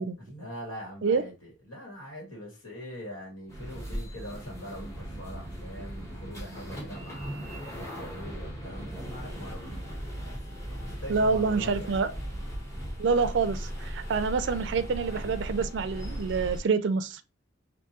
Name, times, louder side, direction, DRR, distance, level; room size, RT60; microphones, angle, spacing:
voice 1, 0.2-9.8 10.2-12.0, equal, 85° left, 1.8 m, -43 dB
sound 1, 3.5-16.6, equal, 15° left, 1.0 m, -38 dB
voice 2, 11.1-12.1 13.0-17.2, right 4 dB, 60° right, 0.4 m, -27 dB
4.5 x 2.6 x 2.8 m
head